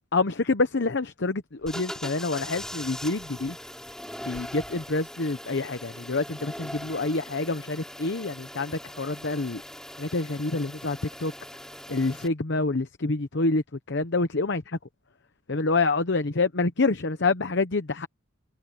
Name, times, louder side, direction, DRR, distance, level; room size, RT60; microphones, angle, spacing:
voice 1, 0.1-3.6 4.3-9.6 10.0-11.3 11.9-14.8 15.5-18.1, left 3 dB, 55° left, 0.9 m, -27 dB
sound 1, 1.6-12.3, equal, 5° left, 4.1 m, -41 dB
open air
head